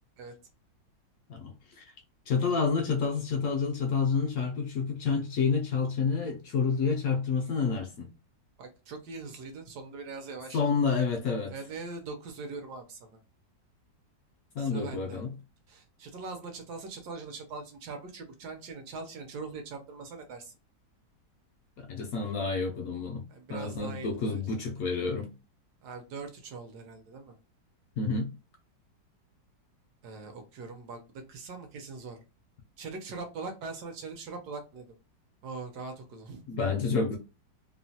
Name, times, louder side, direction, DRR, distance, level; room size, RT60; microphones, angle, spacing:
voice 1, 1.3-1.9 2.3-8.1 10.5-11.5 14.5-15.3 21.8-23.2 23.5-25.3 28.0-28.3 36.5-37.2, left 5 dB, 75° left, 0.8 m, -29 dB
voice 2, 8.6-10.8 11.5-13.1 14.6-15.2 15.7-20.5 23.3-24.4 25.8-27.4 30.0-31.0 31.3-32.2 32.8-35.0 35.4-36.4, right 4 dB, 75° right, 1.1 m, -41 dB
3.0 x 2.1 x 2.7 m
omnidirectional pair, 2.0 m